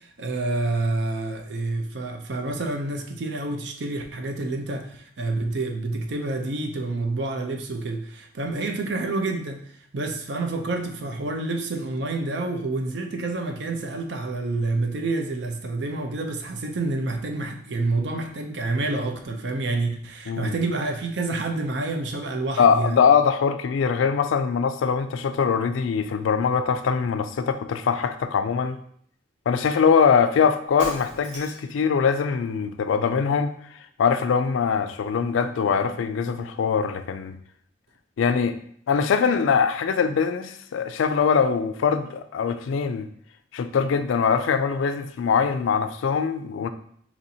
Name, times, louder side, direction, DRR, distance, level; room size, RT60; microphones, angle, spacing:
voice 1, 0.0-23.0, right 2 dB, 60° right, 4 dB, 0.5 m, -28 dB
voice 2, 22.6-28.8 29.5-33.5 34.0-37.4 38.2-38.6 38.9-43.1 43.5-46.7, left 6 dB, 85° left, 10 dB, 0.3 m, -22 dB
Shatter, 30.8-31.8, right 1 dB, 80° right, 1.3 m, -39 dB
4.2 x 2.9 x 2.7 m, 0.64 s
head